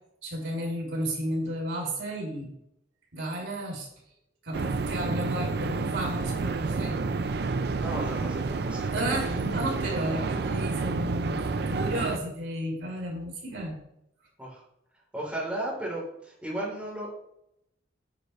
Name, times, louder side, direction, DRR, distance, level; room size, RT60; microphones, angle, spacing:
voice 1, 0.2-2.5 3.1-3.9 4.4-7.0 8.9-13.8, right 1 dB, 85° right, -2 dB, 3.3 m, -33 dB
sound 1, 4.5-12.2, right 4 dB, 55° right, 0.5 m, -29 dB
voice 2, 7.7-9.0 14.4-14.6 15.1-17.1, right 1 dB, 5° right, -6 dB, 3.6 m, -34 dB
9.6 x 7.9 x 3.2 m, 0.78 s
head